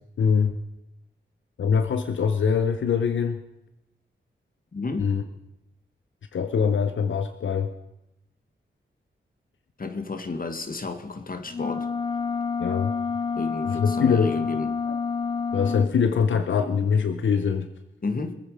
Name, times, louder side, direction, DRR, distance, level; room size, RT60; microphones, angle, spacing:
voice 1, 0.2-0.6 1.6-3.4 5.0-5.2 6.3-7.8 12.6-12.9 13.6-14.5 14.9-15.0 15.5-17.7, left 6 dB, 85° left, 0.8 m, -23 dB
voice 2, 4.7-5.1 9.8-11.9 13.4-14.7 18.0-18.3, left 3 dB, 50° left, 1.8 m, -32 dB
sound 1, 11.5-15.9, left 5 dB, 25° left, 0.5 m, -28 dB
24.5 x 9.1 x 5.0 m
cardioid pair, 70°, 19 cm